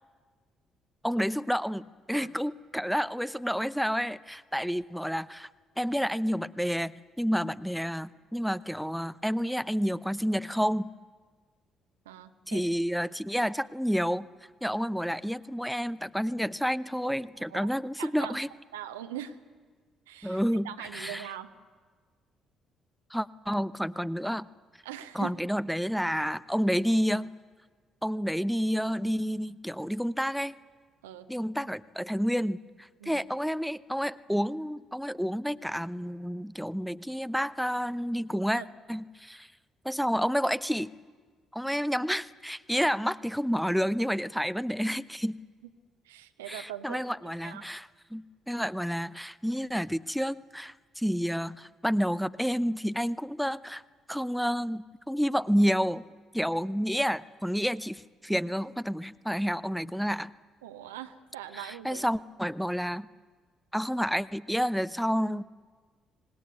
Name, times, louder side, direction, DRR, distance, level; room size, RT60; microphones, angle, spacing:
voice 1, 1.0-5.5 5.8-6.9 7.2-10.9 12.5-14.3 14.6-18.5 20.2-21.3 23.1-24.5 25.1-27.3 28.0-30.6 31.3-38.6 38.9-39.5 39.8-40.9 41.5-45.4 46.5-53.8 54.1-56.0 56.3-60.3 61.5-63.1 63.7-65.4, equal, ahead, 17 dB, 0.8 m, -30 dB
voice 2, 12.0-12.6 17.3-17.7 18.0-18.3 18.7-19.4 20.1-21.5 24.8-25.3 31.0-31.3 33.0-33.2 38.5-38.7 46.0-47.0 47.4-47.7 60.6-62.0, right 12 dB, 75° right, 7 dB, 1.0 m, -42 dB
26.0 x 19.5 x 9.5 m, 1.5 s
figure-of-eight pair, 45°, 0 cm